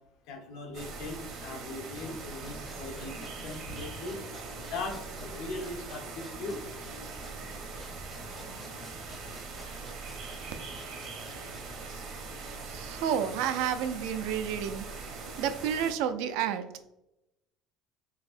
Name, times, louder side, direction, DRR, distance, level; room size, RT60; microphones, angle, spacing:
voice 1, 0.3-4.2 4.7-6.6, left 2 dB, 75° left, 2 dB, 0.9 m, -39 dB
sound 1, 0.7-15.9, right 4 dB, 55° right, 0.7 m, -42 dB
sound 2, 1.9-11.9, left 1 dB, 10° left, 0.5 m, -52 dB
voice 2, 12.6-14.9 15.4-16.9, right 8 dB, 80° right, 10 dB, 0.3 m, -30 dB
4.0 x 2.8 x 2.5 m, 0.88 s
cardioid pair, 155°, 0 cm